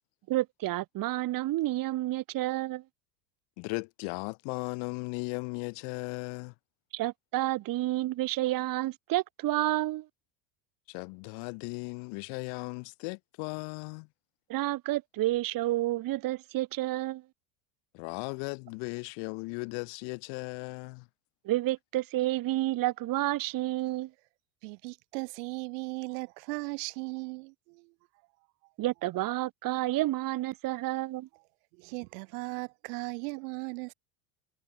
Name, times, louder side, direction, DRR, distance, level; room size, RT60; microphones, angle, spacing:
voice 1, 0.3-2.8 6.9-10.1 14.5-17.2 21.4-24.1 28.8-31.3, right 16 dB, 45° right, 2.3 m, -30 dB
voice 2, 3.6-6.5 10.9-14.1 17.9-21.1, left 36 dB, 65° left, 2.3 m, -37 dB
voice 3, 24.6-27.9 31.7-33.9, right 32 dB, 75° right, 4.8 m, -37 dB
supercardioid pair, 140°, 48 cm